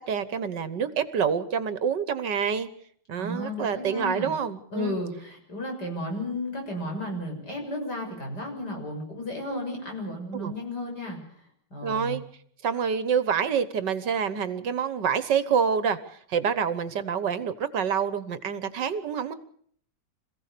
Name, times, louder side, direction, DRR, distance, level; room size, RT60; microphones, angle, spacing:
voice 1, 0.1-2.7 3.1-5.0 10.4-10.5 11.8-12.2 12.6-19.3, right 7 dB, 70° right, 14 dB, 1.8 m, -27 dB
voice 2, 3.2-4.3 4.7-11.2 11.7-12.2, left 1 dB, 60° left, 2 dB, 7.3 m, -33 dB
26.5 x 16.0 x 6.8 m, 0.63 s
omnidirectional pair, 2.0 m